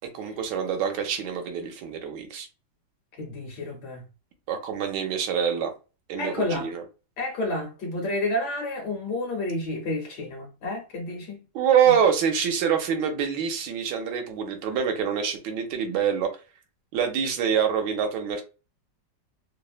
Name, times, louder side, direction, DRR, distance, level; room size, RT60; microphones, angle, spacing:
voice 1, 0.1-2.5 4.5-5.7 6.1-6.8 11.5-16.3 16.9-18.4, right 7 dB, 75° right, 1.2 m, -25 dB
voice 2, 3.2-4.0 6.2-6.7 7.2-11.4 11.9-12.0, left 1 dB, 70° left, 1.2 m, -30 dB
3.2 x 2.0 x 2.3 m
omnidirectional pair, 2.0 m